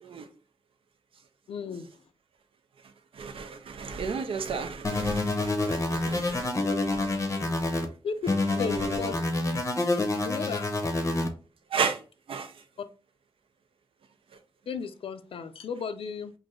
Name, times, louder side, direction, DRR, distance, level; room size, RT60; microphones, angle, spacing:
voice 1, 1.5-1.9 8.0-8.1 8.6-9.1 10.2-10.7 12.8-12.9 14.7-16.3, left 6 dB, 80° left, 0.4 m, -34 dB
voice 2, 3.1-7.9 10.1-10.2 11.7-12.0 12.3-12.5, right 5 dB, 75° right, 0.5 m, -34 dB
sound 1, 4.8-7.9 8.3-11.3, left 2 dB, 30° left, 0.6 m, -27 dB
3.1 x 2.5 x 3.6 m
wide cardioid pair, 165°, 9 cm